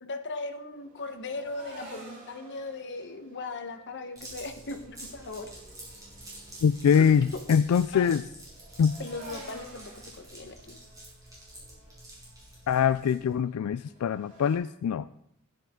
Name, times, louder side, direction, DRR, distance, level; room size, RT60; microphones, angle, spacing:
voice 1, 0.0-5.5 7.9-8.1 9.0-10.8, left 3 dB, 55° left, 7 dB, 1.2 m, -38 dB
sound 1, 0.7-14.5, right 1 dB, 35° right, 6.3 m, -52 dB
sound 2, 4.2-13.3, right 1 dB, 15° right, 5.7 m, -48 dB
voice 2, 6.6-8.2 8.8-9.0 12.7-15.1, left 7 dB, 85° left, 14 dB, 0.3 m, -23 dB
15.0 x 11.0 x 3.8 m, 0.76 s
head